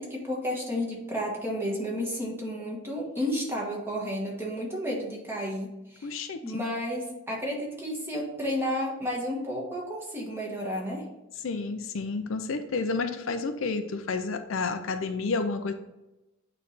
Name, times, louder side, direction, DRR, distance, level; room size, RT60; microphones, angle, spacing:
voice 1, 0.0-6.1 6.4-11.0, equal, 10° right, -3 dB, 1.4 m, -32 dB
voice 2, 6.0-6.6 11.4-15.7, left 4 dB, 70° left, 8 dB, 0.5 m, -30 dB
8.5 x 3.2 x 4.1 m, 0.97 s
head